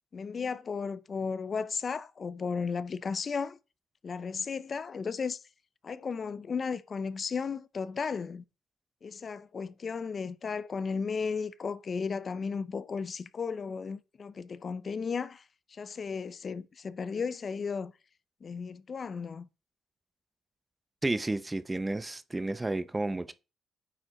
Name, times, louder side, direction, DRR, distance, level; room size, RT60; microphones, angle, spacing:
voice 1, 0.1-3.6 4.0-5.4 5.8-8.4 9.0-15.4 15.7-17.9 18.4-19.5, left 5 dB, 40° left, 0.5 m, -34 dB
voice 2, 21.0-23.3, right 2 dB, 15° right, 0.6 m, -31 dB
9.1 x 4.3 x 3.8 m
cardioid pair, 90°, 0 cm